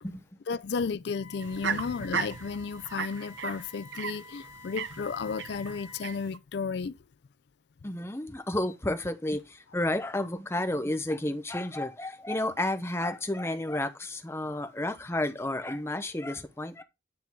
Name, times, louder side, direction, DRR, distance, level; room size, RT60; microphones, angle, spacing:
voice 1, 0.5-7.0, left 5 dB, 60° left, 0.4 m, -33 dB
Wind instrument woodwind instrument, 1.1-6.1, left 3 dB, 30° left, 1.8 m, -50 dB
sound 1, 1.4-6.4, right 6 dB, 75° right, 0.7 m, -36 dB
voice 2, 7.8-16.8, left 1 dB, 15° left, 0.7 m, -31 dB
9.6 x 3.8 x 4.5 m
head